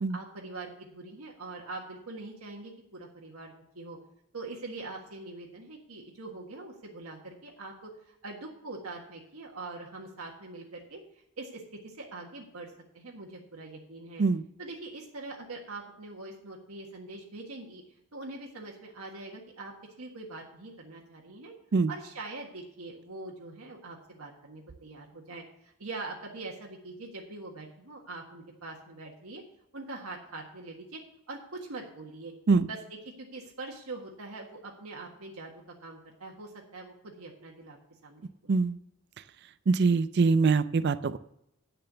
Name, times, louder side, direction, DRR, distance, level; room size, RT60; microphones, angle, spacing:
voice 1, 0.1-4.0 4.3-11.0 11.4-14.2 14.6-17.8 18.1-21.5 21.9-29.4 29.7-32.3 32.6-32.8 33.2-35.5 35.8-37.8 38.0-38.5, right 3 dB, 75° right, -1 dB, 1.6 m, -43 dB
voice 2, 39.7-41.2, right 4 dB, 50° right, 14 dB, 0.4 m, -23 dB
10.0 x 6.7 x 6.8 m, 0.78 s
head